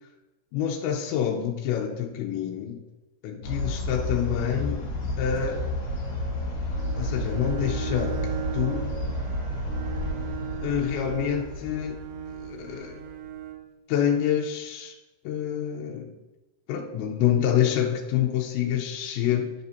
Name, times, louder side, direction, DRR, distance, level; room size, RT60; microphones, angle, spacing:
voice 1, 0.5-2.8 3.2-4.8 5.2-5.6 7.0-8.2 8.5-8.9 10.6-12.0 12.4-13.0 13.9-14.9 15.2-16.1 16.7-19.5, left 9 dB, 80° left, 0 dB, 2.8 m, -27 dB
sound 1, 3.4-13.2, left 1 dB, 50° left, 2.0 m, -31 dB
Bowed string instrument, 6.6-13.7, right 8 dB, 90° right, 3.1 m, -38 dB
10.0 x 6.8 x 2.7 m, 1.1 s
omnidirectional pair, 5.5 m